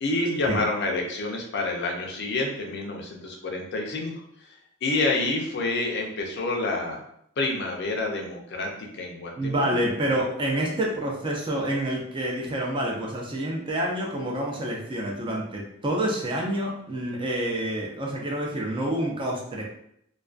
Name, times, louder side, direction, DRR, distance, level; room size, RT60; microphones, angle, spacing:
voice 1, 0.0-4.1 4.5-4.6 4.8-7.0 7.4-9.8, left 2 dB, 55° left, 1 dB, 0.5 m, -28 dB
voice 2, 9.4-19.6, right 1 dB, 25° right, -2 dB, 0.4 m, -28 dB
2.3 x 2.2 x 2.4 m, 0.73 s
head